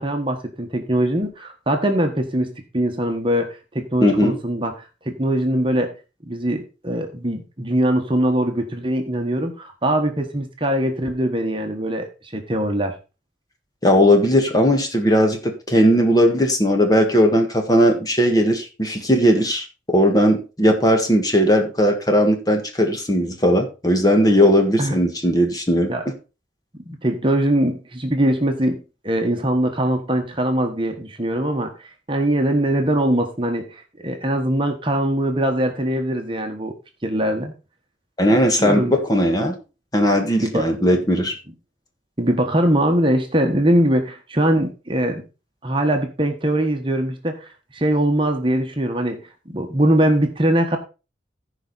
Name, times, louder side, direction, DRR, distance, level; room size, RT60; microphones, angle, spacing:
voice 1, 0.0-3.5 3.7-4.7 5.0-5.9 6.3-12.1 12.3-12.9 24.8-25.0 25.9-26.0 26.8-36.7 37.0-37.5 38.6-39.0 40.4-40.6 42.2-45.2 45.6-49.2 49.5-50.8, right 1 dB, 25° right, 4 dB, 1.3 m, -22 dB
voice 2, 4.0-4.4 13.8-26.1 38.2-39.5 39.9-41.3, equal, 20° left, 4 dB, 1.6 m, -18 dB
15.0 x 5.1 x 4.1 m, 0.31 s
head